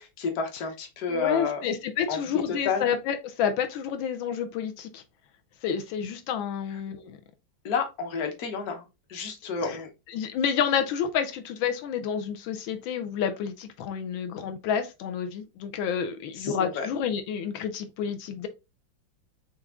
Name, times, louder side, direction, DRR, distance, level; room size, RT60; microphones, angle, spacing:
voice 1, 0.0-1.6 2.1-2.9 7.6-8.8 9.1-9.9 16.3-16.9, left 5 dB, 55° left, 1.4 m, -30 dB
voice 2, 1.1-5.0 5.6-7.2 9.6-9.8 10.1-18.5, left 7 dB, 85° left, 1.4 m, -29 dB
4.7 x 3.1 x 3.6 m
omnidirectional pair, 2.1 m